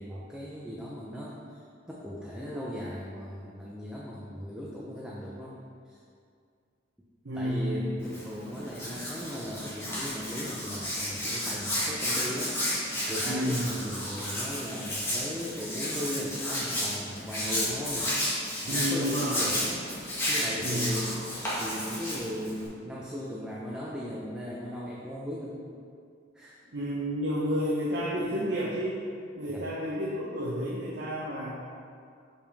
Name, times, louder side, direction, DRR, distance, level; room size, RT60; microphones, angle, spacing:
voice 1, 0.0-1.6 1.9-5.6 5.9-6.0 7.3-12.8 13.1-18.4 18.6-25.6 26.3-26.6 29.5-29.7, equal, 5° right, -6 dB, 0.5 m, -38 dB
voice 2, 7.2-7.9 13.3-13.7 18.7-19.4 20.6-21.0 26.7-29.0 29.4-31.5, equal, 65° right, -5 dB, 0.8 m, -30 dB
Hands, 8.0-22.7, equal, 15° left, 1.6 m, -32 dB
6.9 x 5.3 x 3.4 m, 2.3 s
head